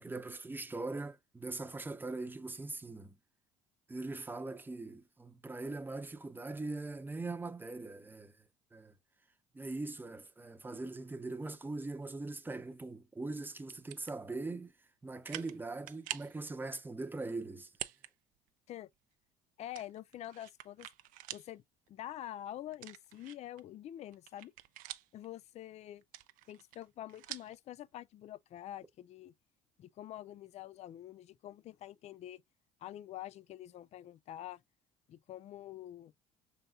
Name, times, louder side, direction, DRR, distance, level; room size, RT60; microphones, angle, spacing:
voice 1, 0.0-3.2 3.9-8.3 8.7-8.9 9.5-14.7 15.0-17.7, right 3 dB, 15° right, 0.8 m, -41 dB
sound 1, 13.6-14.2 14.7-14.8 15.2-15.6 15.9-16.4 17.7-18.1 18.5-18.6 19.7-21.5 21.9-22.0 22.7-23.6 24.0-25.3 26.0-27.6, right 15 dB, 70° right, 0.5 m, -46 dB
voice 2, 19.6-20.9 21.3-24.5 25.1-26.0 26.5-29.3 29.8-32.4 32.8-34.6 35.1-36.1, left 12 dB, 50° left, 0.4 m, -46 dB
5.4 x 3.9 x 2.3 m
supercardioid pair, 85°, 15 cm